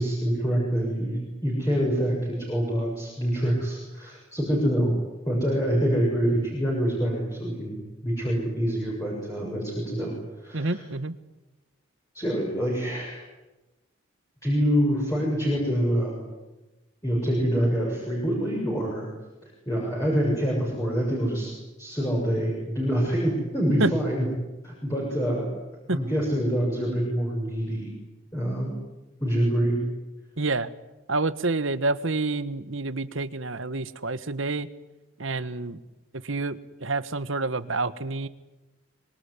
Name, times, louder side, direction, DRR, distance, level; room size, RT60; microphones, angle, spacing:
voice 1, 0.0-4.9 5.3-7.8 8.0-10.1 10.4-10.8 12.1-13.2 14.4-16.2 17.0-19.1 19.4-21.5 21.8-24.3 24.6-25.5 25.9-27.9 28.3-28.7 29.2-29.8, equal, 15° left, -3 dB, 7.3 m, -26 dB
voice 2, 10.5-11.2 23.8-23.9 25.9-26.0 30.4-30.7 31.1-34.7 35.2-35.8 36.2-38.3, right 3 dB, 65° right, 14 dB, 1.5 m, -28 dB
26.0 x 23.0 x 9.9 m, 1.1 s
head